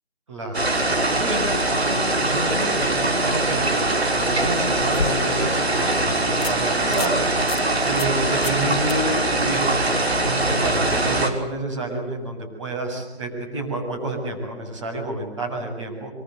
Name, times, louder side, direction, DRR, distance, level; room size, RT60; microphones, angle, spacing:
sound 1, 0.5-11.3, right 2 dB, 70° right, 6.2 m, -22 dB
voice 1, 1.2-6.2 6.5-7.2 7.8-16.1, right 2 dB, 30° right, 3 dB, 7.6 m, -29 dB
sound 2, 2.5-2.9 4.3-5.6 6.0-6.1 6.4-6.5 6.9-7.2 7.5-7.6 8.0-8.2 8.4-8.6 8.9-9.0 12.1-12.2, left 4 dB, 65° left, 1.8 m, -31 dB
26.0 x 25.5 x 8.0 m, 0.84 s
figure-of-eight pair, 175°, 33 cm